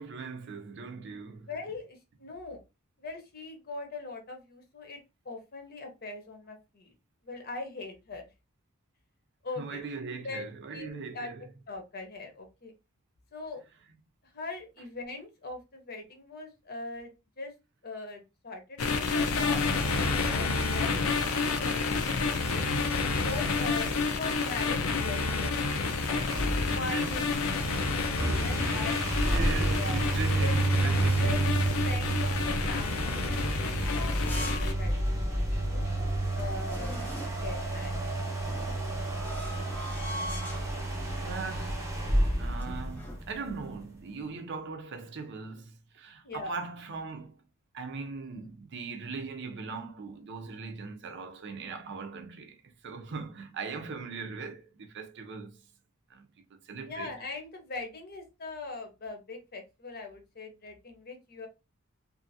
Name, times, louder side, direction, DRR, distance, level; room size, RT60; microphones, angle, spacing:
voice 1, 0.0-1.5 9.6-11.5 23.5-23.9 25.7-25.8 26.6-27.2 28.5-31.6 41.2-41.9 42.4-47.3 47.7-52.6 52.8-55.6 56.1-57.2, right 4 dB, 55° right, 0.5 m, -40 dB
voice 2, 1.4-2.6 3.0-5.0 5.2-6.9 7.2-8.2 9.4-9.8 10.2-11.3 11.7-12.7 13.3-13.6 14.3-17.1 17.4-17.5 17.8-22.6 23.2-25.5 26.7-27.4 28.4-29.0 29.7-30.1 30.4-30.6 31.2-35.8 36.3-38.0 46.2-46.5 56.8-61.5, left 3 dB, 45° left, 0.8 m, -41 dB
sound 1, 18.8-34.7, left 4 dB, 70° left, 0.5 m, -29 dB
sound 2, 26.0-43.5, right 1 dB, 15° right, 0.9 m, -30 dB
sound 3, 30.2-31.4 32.7-34.8 35.2-35.3 35.9-36.0 36.2-37.5 38.5-40.7 41.4-41.6 41.9-43.2, left 1 dB, 10° left, 0.5 m, -43 dB
2.7 x 2.5 x 2.6 m
head